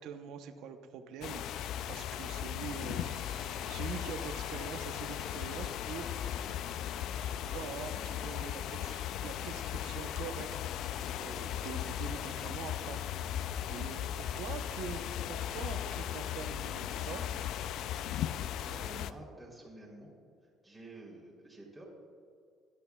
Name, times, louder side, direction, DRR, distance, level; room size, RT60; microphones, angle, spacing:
voice 1, 0.0-6.1 7.2-10.5 10.7-17.2, right 7 dB, 80° right, 6 dB, 0.8 m, -45 dB
sound 1, 1.2-19.1, left 10 dB, 70° left, 0.3 m, -37 dB
Bowed string instrument, 2.8-8.5, right 11 dB, 60° right, 0.4 m, -59 dB
voice 2, 18.6-20.1 20.6-21.8, right 2 dB, ahead, -5 dB, 3.1 m, -50 dB
16.5 x 11.5 x 2.3 m, 2.2 s
cardioid pair, 125°, 0 cm